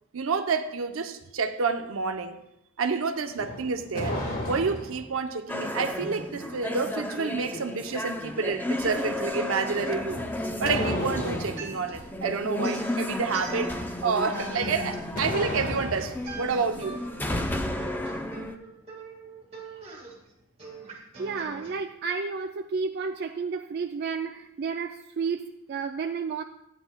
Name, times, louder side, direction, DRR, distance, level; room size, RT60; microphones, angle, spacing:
voice 1, 0.1-2.4 2.8-10.2 10.6-17.0, right 5 dB, 70° right, 0.7 m, -29 dB
sound 1, 3.3-5.1 10.1-11.6 14.5-16.2, left 1 dB, 45° left, 1.7 m, -33 dB
sound 2, 5.5-18.5, left 1 dB, 10° left, 0.5 m, -33 dB
sound 3, 11.5-12.2 12.6-14.0 14.3-21.7, right 3 dB, 30° right, 1.9 m, -44 dB
voice 2, 20.9-26.4, right 5 dB, 50° right, 0.3 m, -32 dB
13.5 x 9.1 x 2.2 m
head